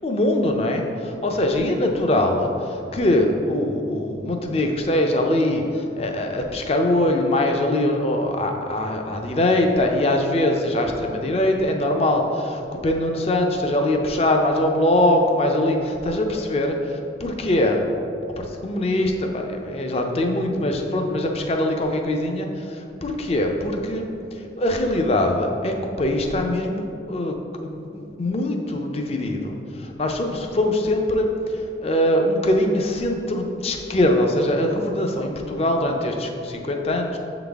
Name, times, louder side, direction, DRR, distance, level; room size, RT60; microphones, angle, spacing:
voice 1, 0.0-16.7 17.2-17.8 18.4-24.1 24.3-27.3 27.6-37.2, left 1 dB, 35° left, 3 dB, 0.5 m, -22 dB
7.1 x 3.9 x 3.5 m, 2.7 s
head